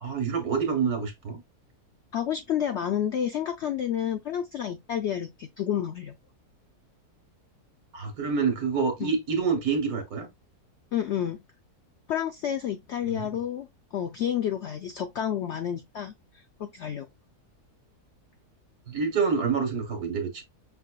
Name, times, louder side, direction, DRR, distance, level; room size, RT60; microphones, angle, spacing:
voice 1, 0.0-1.4 7.9-10.3 13.2-13.3 18.9-20.4, right 5 dB, 65° right, 1.8 m, -27 dB
voice 2, 2.1-6.2 9.0-9.1 10.9-11.4 12.1-17.1, left 9 dB, 80° left, 0.6 m, -30 dB
5.5 x 3.5 x 2.2 m
omnidirectional pair, 1.7 m